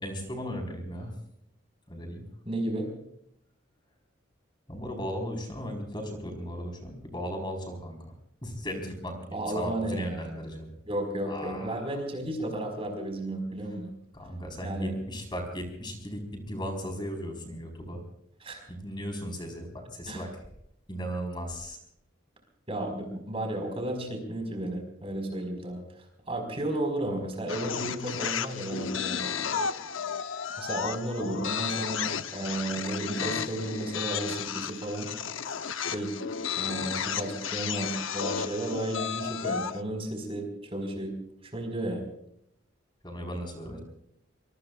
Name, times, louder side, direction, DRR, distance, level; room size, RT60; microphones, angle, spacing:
voice 1, 0.0-1.1 1.9-2.3 4.7-8.1 8.4-10.7 11.2-12.0 14.1-18.0 18.7-20.3 20.9-21.8 43.0-43.8, equal, 25° left, 3 dB, 4.3 m, -36 dB
voice 2, 2.4-2.9 9.3-10.3 10.9-13.9 14.6-15.0 18.4-18.7 20.1-20.2 22.7-25.8 26.3-29.3 30.6-35.1 35.8-36.1 36.6-41.1 41.4-42.0, right 1 dB, 30° right, 4 dB, 4.8 m, -33 dB
sound 1, 27.5-39.8, left 7 dB, 75° left, 0.8 m, -33 dB
25.0 x 23.5 x 2.4 m, 0.74 s
head